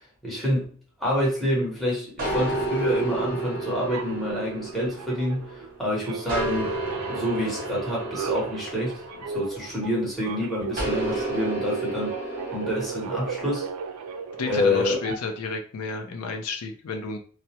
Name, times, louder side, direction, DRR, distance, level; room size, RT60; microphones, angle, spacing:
voice 1, 0.2-0.6 1.0-6.8 7.1-9.0 9.3-13.7 14.5-15.0, left 1 dB, ahead, -6 dB, 0.9 m, -27 dB
sound 1, 2.2-5.8 6.3-10.0 10.8-13.4, right 2 dB, 40° right, 0.7 m, -31 dB
sound 2, 3.9-5.7 6.0-15.5, right 6 dB, 85° right, 0.3 m, -37 dB
voice 2, 14.4-17.2, left 4 dB, 90° left, 4 dB, 0.4 m, -31 dB
2.2 x 2.0 x 2.8 m, 0.43 s
head